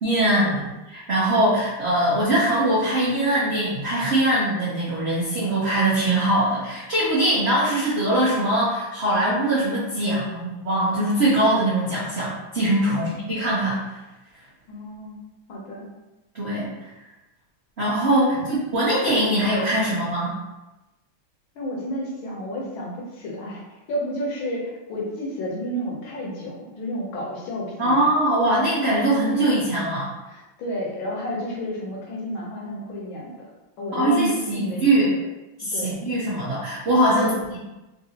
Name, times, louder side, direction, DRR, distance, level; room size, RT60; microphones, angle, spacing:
voice 1, 0.0-14.0 16.3-16.7 17.8-20.3 27.8-30.1 33.9-35.1 35.6-37.3, right 1 dB, 70° right, -9 dB, 0.6 m, -22 dB
voice 2, 14.7-15.2 15.5-15.9 18.3-18.4 21.5-23.6 23.9-28.1 30.3-33.5 33.8-35.2 35.7-36.0 37.1-37.3, left 1 dB, 70° left, -3 dB, 1.4 m, -31 dB
3.8 x 2.6 x 2.8 m, 1.0 s
omnidirectional pair, 2.4 m